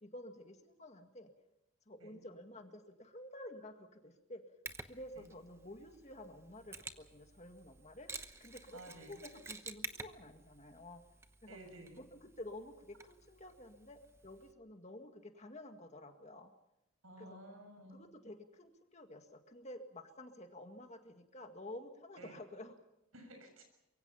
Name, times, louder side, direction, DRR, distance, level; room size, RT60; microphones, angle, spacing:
voice 1, 0.0-1.3 1.9-4.4 4.9-8.1 8.4-11.0 11.4-11.6 12.0-16.5 17.2-17.4 17.9-22.7, left 1 dB, 35° left, 5 dB, 1.9 m, -51 dB
Mechanisms, 4.7-14.5, right 3 dB, 10° right, 0.9 m, -51 dB
voice 2, 8.7-9.2 11.5-12.0 17.0-18.0 22.2-22.4 23.1-23.6, right 1 dB, 85° right, 5 dB, 6.9 m, -53 dB
24.5 x 23.5 x 5.6 m, 0.86 s
head